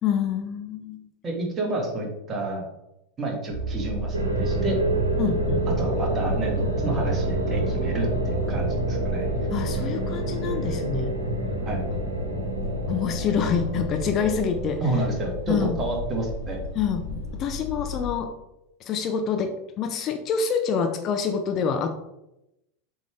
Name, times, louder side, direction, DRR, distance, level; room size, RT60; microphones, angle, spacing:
voice 1, 0.0-1.1 5.2-5.6 9.5-11.1 12.9-14.8 15.5-15.8 16.7-18.3 18.8-22.0, left 7 dB, 35° left, 6 dB, 0.8 m, -27 dB
voice 2, 1.2-2.7 3.2-4.8 5.6-9.3 11.7-11.8 14.8-16.6, right 2 dB, 25° right, 0 dB, 2.2 m, -29 dB
sound 1, 3.5-18.1, right 1 dB, 85° left, 1.8 m, -32 dB
sound 2, 4.1-16.2, right 1 dB, 75° right, 1.3 m, -28 dB
7.7 x 3.8 x 4.8 m, 0.88 s
figure-of-eight pair, 85°, 0 cm